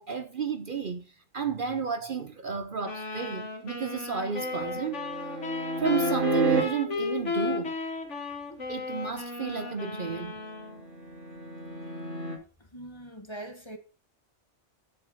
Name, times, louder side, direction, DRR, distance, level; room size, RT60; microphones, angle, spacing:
voice 1, 0.0-5.0 5.8-7.8 8.7-10.4, right 6 dB, 50° right, 0.9 m, -32 dB
sound 1, 2.8-10.8, left 4 dB, 75° left, 2.2 m, -34 dB
sound 2, 4.4-6.6 10.0-12.4, right 4 dB, 85° right, 3.1 m, -32 dB
voice 2, 12.6-13.8, right 1 dB, 25° left, 1.4 m, -42 dB
10.0 x 8.1 x 4.2 m
omnidirectional pair, 1.2 m